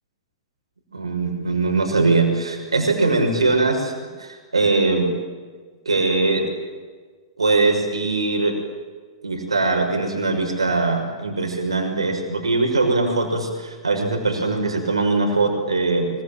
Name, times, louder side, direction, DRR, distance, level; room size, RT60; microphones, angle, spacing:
voice 1, 0.9-5.1 5.9-6.5 7.4-8.6 9.2-16.1, right 3 dB, 80° right, 2 dB, 6.1 m, -21 dB
25.0 x 23.5 x 9.0 m, 1.5 s
figure-of-eight pair, 105°, 3 cm